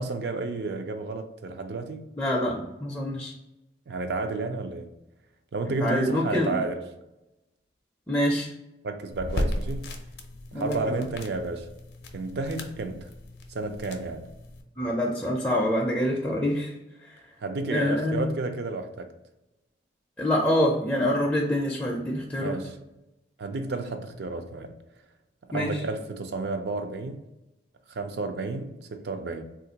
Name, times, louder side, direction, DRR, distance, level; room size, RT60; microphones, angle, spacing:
voice 1, 0.0-2.1 3.9-4.9 5.5-6.8 8.8-9.9 10.5-11.7 12.1-13.1 13.5-14.3 17.4-19.1 22.4-22.8 23.4-24.7 25.5-27.2 27.9-29.4, right 3 dB, 65° right, 0.4 m, -32 dB
voice 2, 2.2-3.3 5.6-6.5 8.1-8.5 10.5-11.1 14.8-16.7 17.7-18.2 20.2-22.6 25.5-25.8, left 1 dB, 10° left, 0.4 m, -26 dB
sound 1, 9.1-14.6, left 1 dB, 65° left, 0.5 m, -35 dB
3.6 x 2.4 x 2.7 m
head